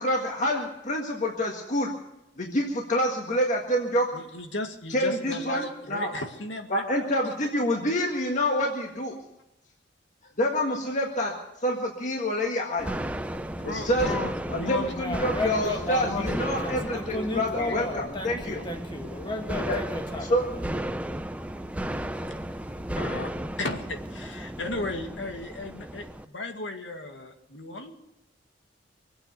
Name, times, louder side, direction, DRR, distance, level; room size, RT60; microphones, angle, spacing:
voice 1, 0.0-1.9 2.4-4.1 4.9-6.1 6.7-9.2 10.4-11.3 11.6-12.9 13.6-14.1 14.5-18.6 19.7-19.8 20.3-20.4, equal, 45° left, 0 dB, 1.8 m, -27 dB
voice 2, 4.1-7.3 13.5-14.9 15.9-16.3 17.6-17.8 22.5-22.6 23.0-23.3 23.6-28.1, left 2 dB, 90° left, 4 dB, 2.1 m, -35 dB
sound 1, 12.8-26.2, right 1 dB, 5° right, 0.6 m, -34 dB
voice 3, 14.9-21.0, left 2 dB, 25° left, 4 dB, 2.0 m, -34 dB
24.0 x 8.8 x 6.8 m, 0.89 s
head